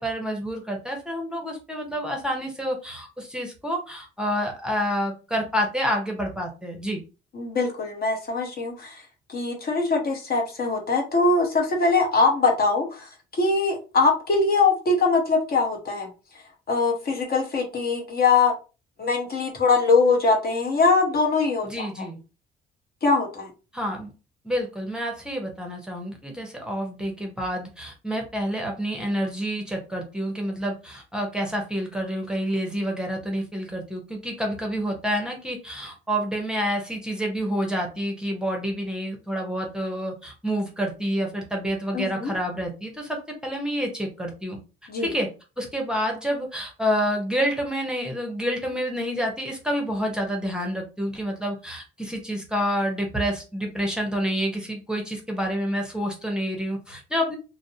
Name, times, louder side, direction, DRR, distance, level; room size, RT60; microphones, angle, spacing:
voice 1, 0.0-7.0 21.6-22.2 23.7-24.1 24.4-44.6 45.0-45.3 45.6-57.4, equal, 5° right, 1 dB, 0.7 m, -28 dB
voice 2, 7.3-9.0 9.3-16.1 16.7-18.5 19.0-22.1 23.0-23.5 41.9-42.3 44.9-45.1, left 3 dB, 50° left, 1 dB, 0.8 m, -22 dB
2.4 x 2.0 x 2.7 m, 0.32 s
cardioid pair, 90°, 20 cm